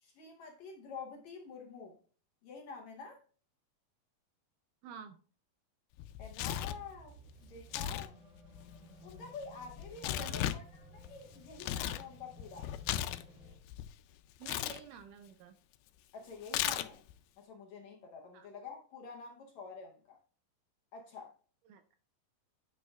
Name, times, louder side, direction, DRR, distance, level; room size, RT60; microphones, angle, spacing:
voice 1, 0.0-2.0 2.4-3.2 6.2-8.2 9.0-12.7 16.1-17.0 17.4-20.2 20.9-21.3, left 5 dB, 70° left, 1.7 m, -48 dB
voice 2, 4.8-5.2 10.1-10.4 14.4-15.6 18.3-18.5 21.7-21.8, right 7 dB, 80° right, 1.9 m, -49 dB
Tearing, 6.0-6.8 7.6-8.1 8.4-12.0 12.4-13.9 14.4-14.8 16.5-17.1, left 12 dB, 90° left, 2.4 m, -36 dB
sound 1, 6.5-13.6, right 1 dB, 40° right, 2.9 m, -57 dB
9.3 x 8.3 x 2.4 m
omnidirectional pair, 4.1 m